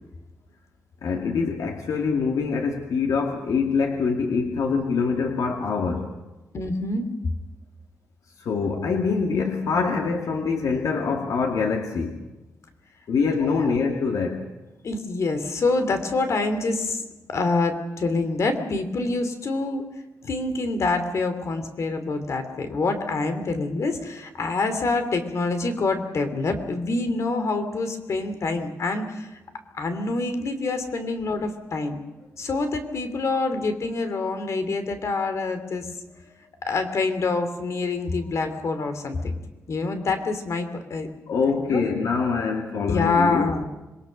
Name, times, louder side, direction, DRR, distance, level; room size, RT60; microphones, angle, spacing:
voice 1, 1.0-6.1 8.4-12.2 13.1-14.5 41.3-43.6, left 5 dB, 85° left, 2 dB, 2.4 m, -24 dB
voice 2, 6.5-7.1 13.4-13.7 14.8-17.0 17.3-19.9 20.2-29.3 29.8-32.0 32.4-35.9 36.7-39.3 39.7-41.1 41.5-41.8 42.9-43.6, left 3 dB, 55° left, 8 dB, 2.9 m, -26 dB
27.5 x 22.0 x 6.5 m, 1.1 s
wide cardioid pair, 150°, 6 cm